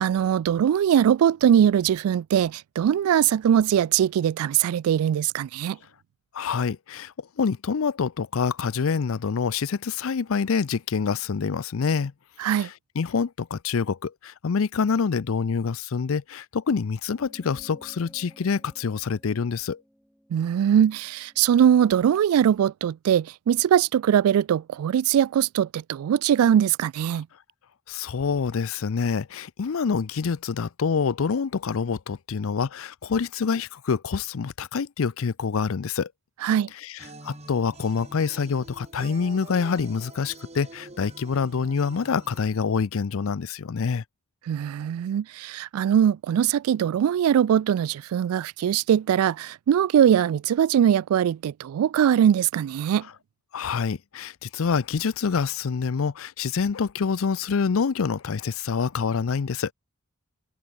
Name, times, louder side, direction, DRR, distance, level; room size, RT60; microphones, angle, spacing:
voice 1, 0.0-5.8 12.4-12.7 20.3-27.3 36.4-36.7 44.5-53.1, right 9 dB, 85° right, 0.3 m, -21 dB
voice 2, 6.3-12.1 12.4-19.8 27.1-27.2 27.9-36.1 36.8-44.0 53.5-59.7, left 5 dB, 65° left, 0.5 m, -26 dB
sound 1, 17.1-21.9, equal, ahead, 3.8 m, -55 dB
sound 2, 37.0-42.4, right 2 dB, 30° right, 4.1 m, -45 dB
head